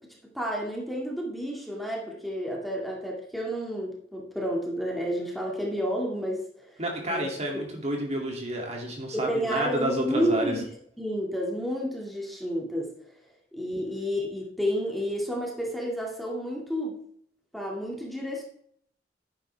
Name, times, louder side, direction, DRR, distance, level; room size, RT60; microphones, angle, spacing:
voice 1, 0.3-6.7 7.1-7.3 7.5-7.6 9.1-10.6 11.0-12.9 13.5-17.0 17.5-18.4, equal, ahead, -2 dB, 2.1 m, -30 dB
voice 2, 6.8-10.5, right 1 dB, 40° right, 0 dB, 2.4 m, -30 dB
10.5 x 9.7 x 3.4 m, 0.65 s
head